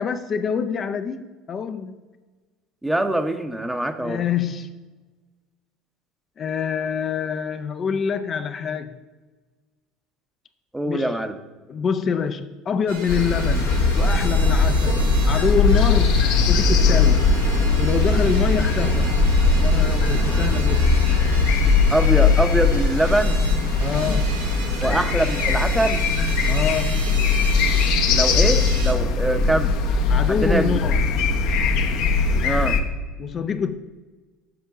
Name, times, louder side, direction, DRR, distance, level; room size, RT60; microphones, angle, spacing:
voice 1, 0.0-2.0 4.0-4.7 6.4-8.9 10.9-11.2 11.7-17.3 17.8-19.1 19.6-21.0 23.8-24.3 26.5-27.2 30.1-31.2 33.2-33.7, left 6 dB, 40° left, 0.4 m, -26 dB
voice 2, 2.8-4.2 10.7-11.4 21.9-23.4 24.8-26.0 28.1-29.7 30.3-30.8 32.4-32.8, right 1 dB, 5° right, 0.7 m, -23 dB
sound 1, 12.9-28.9, right 4 dB, 80° right, 1.6 m, -35 dB
sound 2, 13.1-32.8, left 4 dB, 60° left, 0.8 m, -19 dB
6.8 x 5.3 x 4.7 m
hypercardioid pair, 70°, 0 cm